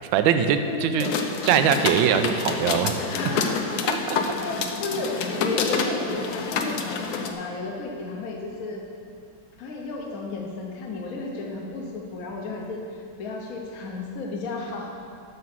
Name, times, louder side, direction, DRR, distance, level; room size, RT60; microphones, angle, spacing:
voice 1, 0.1-1.1 1.5-3.0 3.9-4.2, right 8 dB, 75° right, 9 dB, 1.3 m, -22 dB
voice 2, 0.6-1.1 2.9-3.7 4.0-4.1 4.4-8.8 9.6-14.9, left 3 dB, 50° left, 0 dB, 1.3 m, -33 dB
sound 1, 1.0-7.3, left 5 dB, 65° left, 1.0 m, -28 dB
9.6 x 6.2 x 6.1 m, 2.4 s
omnidirectional pair, 2.3 m